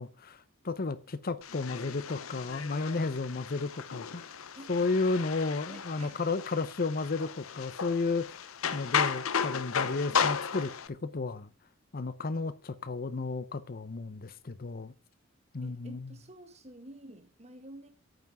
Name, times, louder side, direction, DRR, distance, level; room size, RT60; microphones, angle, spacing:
voice 1, 0.0-4.4 4.7-8.5 8.7-11.5 11.9-14.9 15.5-16.1, left 3 dB, 45° left, 0.7 m, -33 dB
sound 1, 1.4-10.9, left 6 dB, 90° left, 0.9 m, -34 dB
voice 2, 5.7-6.2 15.6-17.9, right 1 dB, 30° right, 1.7 m, -50 dB
9.0 x 5.9 x 8.2 m
head